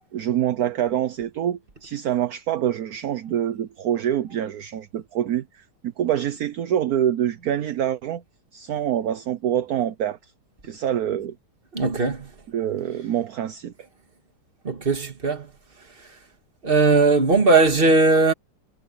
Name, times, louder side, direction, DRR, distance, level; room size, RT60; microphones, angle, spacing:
voice 1, 0.0-8.2 8.5-10.3 10.6-11.3 12.5-13.7, right 10 dB, 60° right, 1.3 m, -26 dB
voice 2, 11.7-12.3 14.6-15.5 16.6-18.3, right 3 dB, 30° right, 2.2 m, -18 dB
omnidirectional pair, 1.9 m